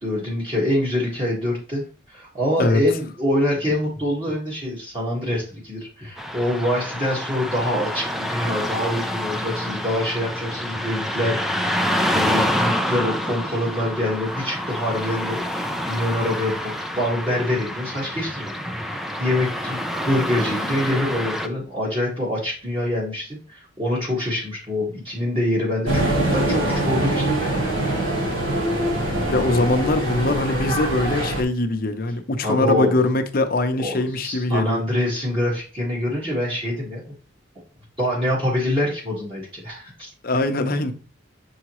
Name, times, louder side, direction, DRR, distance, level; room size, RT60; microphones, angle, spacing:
voice 1, 0.0-16.7 17.0-28.0 32.4-33.0 33.8-37.0 38.0-40.1, left 1 dB, 25° right, 1.5 m, -25 dB
Car passing by / Traffic noise roadway noise, 6.2-21.5, equal, ahead, 0.3 m, -27 dB
sound 1, 25.8-31.4, right 1 dB, 75° right, 1.6 m, -23 dB
voice 2, 29.3-34.8 40.2-40.9, left 2 dB, 45° left, 0.7 m, -22 dB
7.1 x 4.7 x 3.0 m
head